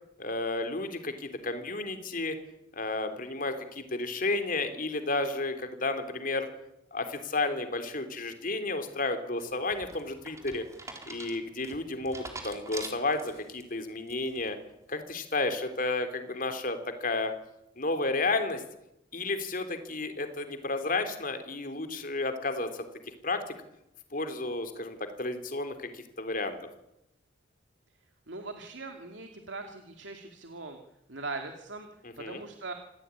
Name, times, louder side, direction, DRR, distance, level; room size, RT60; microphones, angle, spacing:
voice 1, 0.2-2.4 2.7-6.5 6.9-10.6 11.1-14.6 14.9-17.3 17.8-18.6 19.1-22.9 23.2-23.6 24.1-26.6 32.0-32.4, left 2 dB, 45° left, 7 dB, 3.6 m, -32 dB
sound 1, 9.4-13.6 14.1-14.5, right 3 dB, 15° right, 4.1 m, -44 dB
voice 2, 28.3-30.8 31.1-31.9 32.2-32.7, right 3 dB, 70° right, 5 dB, 2.5 m, -40 dB
27.5 x 17.0 x 9.9 m, 0.86 s
head